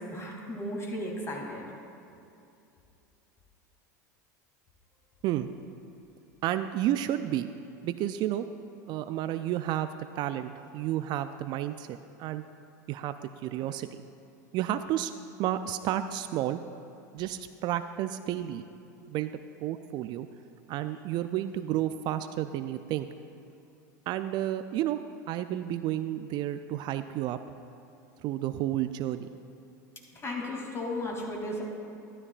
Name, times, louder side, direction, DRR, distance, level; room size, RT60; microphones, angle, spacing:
voice 1, 0.0-1.7 30.1-31.6, left 1 dB, 30° left, -1 dB, 2.6 m, -35 dB
voice 2, 6.4-7.5 7.8-8.5 8.9-9.9 10.2-12.5 12.9-13.9 14.5-15.1 15.4-16.6 17.1-18.6 19.1-19.3 19.6-20.3 20.7-23.1 24.1-25.0 25.3-27.4 28.2-29.3, right 12 dB, 50° right, 10 dB, 0.4 m, -31 dB
13.0 x 12.0 x 2.5 m, 2.7 s
hypercardioid pair, 90°, 10 cm